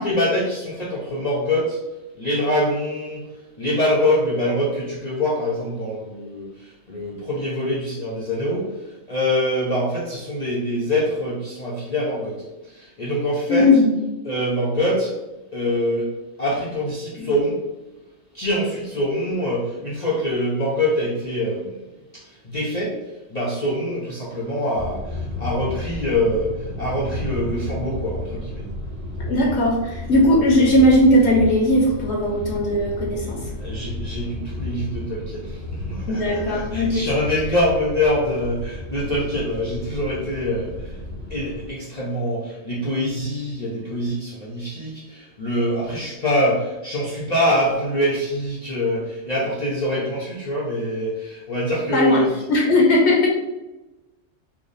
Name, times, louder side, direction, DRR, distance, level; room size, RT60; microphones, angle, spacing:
voice 1, 0.0-1.8 2.2-3.3 3.6-8.7 9.1-12.4 12.7-13.7 14.2-15.1 15.5-16.1 16.4-17.6 18.3-21.8 22.1-23.0 23.3-26.5 26.8-28.6 29.5-29.6 33.1-33.2 33.6-40.9 41.3-52.3, left 1 dB, 45° left, -5 dB, 0.6 m, -24 dB
voice 2, 13.5-14.0 17.2-17.3 29.2-33.5 36.1-37.1 51.9-53.3, left 1 dB, 65° left, -2 dB, 0.9 m, -18 dB
sound 1, 24.7-41.7, left 2 dB, 40° right, 1.0 m, -32 dB
3.4 x 2.1 x 3.9 m, 1.0 s
omnidirectional pair, 1.3 m